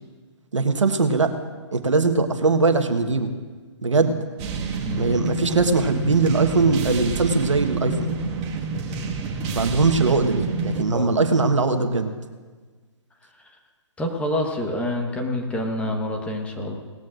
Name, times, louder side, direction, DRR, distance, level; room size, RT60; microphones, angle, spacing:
voice 1, 0.5-1.3 1.7-3.3 3.8-4.2 5.0-8.1 9.5-12.1, right 3 dB, 90° right, 6 dB, 1.3 m, -21 dB
sound 1, 4.4-10.8, right 4 dB, 25° right, 1.7 m, -28 dB
voice 2, 4.8-5.1 10.9-11.5 14.0-16.8, left 1 dB, 10° left, 2 dB, 1.2 m, -27 dB
19.0 x 13.5 x 2.5 m, 1.4 s
hypercardioid pair, 140°, 15 cm